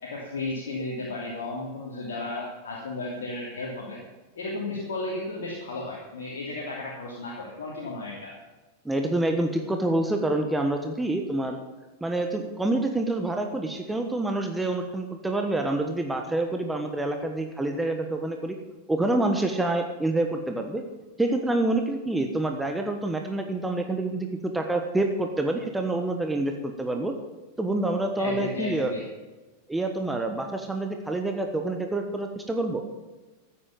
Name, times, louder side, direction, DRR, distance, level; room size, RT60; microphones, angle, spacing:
voice 1, 0.0-4.0 4.4-8.3 28.2-29.0, left 2 dB, 60° left, -3 dB, 2.9 m, -34 dB
voice 2, 8.8-11.6 12.0-18.6 18.9-20.8 21.2-27.1 27.6-28.9 29.7-32.8, right 2 dB, 5° right, 4 dB, 1.3 m, -27 dB
14.5 x 8.6 x 7.1 m, 1.2 s
figure-of-eight pair, 90°, 0 cm